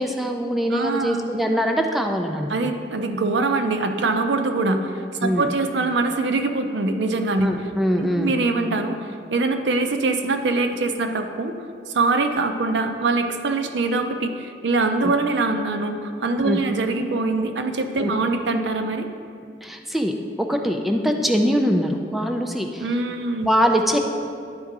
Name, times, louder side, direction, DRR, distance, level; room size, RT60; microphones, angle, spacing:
voice 1, 0.0-2.7 5.2-5.5 7.4-8.3 15.0-15.1 16.4-16.6 18.0-18.1 19.6-22.9 23.4-24.0, equal, ahead, 3 dB, 0.3 m, -23 dB
voice 2, 0.7-1.2 2.5-7.5 8.0-11.6 11.9-19.1 22.8-23.5, right 3 dB, 70° right, 6 dB, 0.5 m, -23 dB
10.5 x 3.7 x 4.7 m, 2.4 s
head